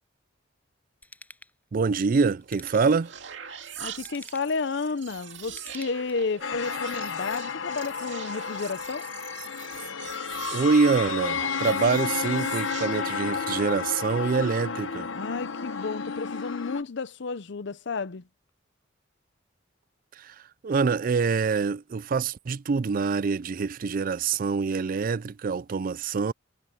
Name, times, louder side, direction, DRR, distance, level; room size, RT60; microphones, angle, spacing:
Ratchet pawl / Tools, 1.0-1.5 2.4-3.1 3.9-4.6 5.4-6.4 6.9-7.0, left 2 dB, 10° left, 6.1 m, -48 dB
voice 1, 1.7-3.1 10.5-15.1 20.2-20.3 20.6-26.3, right 5 dB, 45° right, 0.4 m, -25 dB
sound 1, 2.4-13.9, right 9 dB, 65° right, 2.4 m, -43 dB
voice 2, 3.8-9.1 15.1-18.3, left 4 dB, 65° left, 0.7 m, -32 dB
sound 2, 6.4-16.8, left 5 dB, 85° left, 1.0 m, -32 dB
head